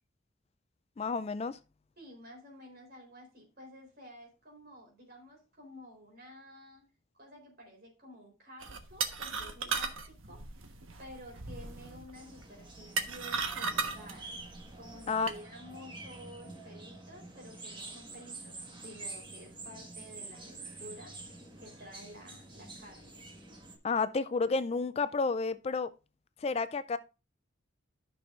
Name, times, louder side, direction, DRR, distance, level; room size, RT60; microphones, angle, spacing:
voice 1, 1.0-1.6 15.1-15.3 23.8-25.9 26.4-27.0, left 4 dB, 30° left, 0.3 m, -31 dB
voice 2, 2.0-6.8 7.2-10.7 11.0-14.4 14.8-18.5 18.8-21.2 21.6-23.3, equal, 50° right, 3.9 m, -51 dB
sound 1, 8.6-15.4, right 4 dB, 85° right, 1.3 m, -37 dB
sound 2, 12.1-23.8, right 2 dB, 25° right, 1.5 m, -47 dB
13.5 x 6.1 x 2.5 m
head